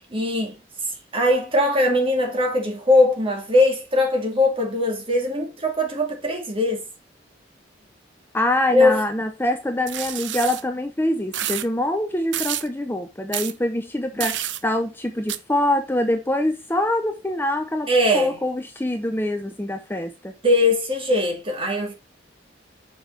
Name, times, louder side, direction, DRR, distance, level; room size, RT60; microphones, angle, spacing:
voice 1, 0.1-0.5 1.1-6.8 8.7-9.0 17.9-18.4 20.4-21.9, left 1 dB, 30° right, 2.2 m, -20 dB
voice 2, 8.3-20.3, left 1 dB, 10° left, 0.7 m, -25 dB
sound 1, 9.9-10.6 11.3-11.7 12.3-12.7 13.3-13.5 14.2-14.6 15.3-15.4, right 12 dB, 80° right, 0.6 m, -28 dB
7.0 x 5.4 x 4.1 m
head